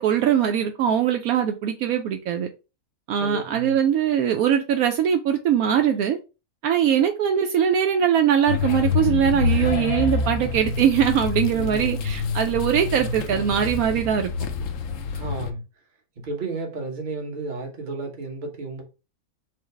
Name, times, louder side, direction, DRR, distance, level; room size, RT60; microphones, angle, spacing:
voice 1, 0.0-2.5 3.1-6.2 6.6-14.3, right 9 dB, 75° right, 1.0 m, -21 dB
voice 2, 3.1-3.8 11.5-12.2 15.1-15.6 16.2-18.8, right 3 dB, 35° right, 1.1 m, -32 dB
sound 1, 8.5-15.5, left 5 dB, 65° left, 0.9 m, -27 dB
4.7 x 2.0 x 4.5 m
omnidirectional pair, 1.6 m